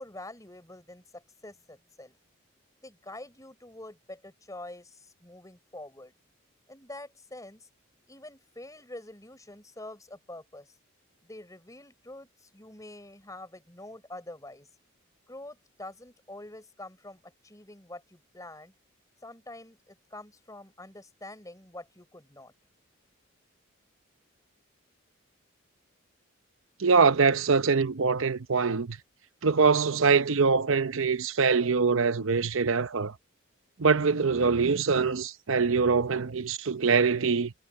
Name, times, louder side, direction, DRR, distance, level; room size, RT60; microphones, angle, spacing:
voice 1, 0.0-2.2 2.8-6.1 6.7-7.7 8.1-10.8 11.2-14.7 15.3-18.7 19.2-22.5, left 1 dB, 15° left, 4.5 m, -46 dB
voice 2, 26.8-29.0 29.4-33.1 33.8-37.5, right 5 dB, 70° right, 0.8 m, -24 dB
head